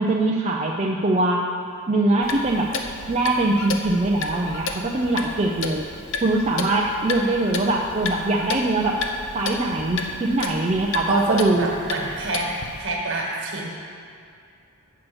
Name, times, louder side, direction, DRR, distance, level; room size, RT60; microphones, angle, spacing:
voice 1, 0.0-1.5 1.9-2.7 3.1-5.8 6.2-9.0 9.3-11.7, right 2 dB, 30° right, -2 dB, 0.5 m, -22 dB
Clock, 2.2-12.8, left 3 dB, 60° left, 0.7 m, -32 dB
voice 2, 11.1-13.7, right 2 dB, 60° right, -2 dB, 1.6 m, -27 dB
8.3 x 5.6 x 6.9 m, 2.4 s
head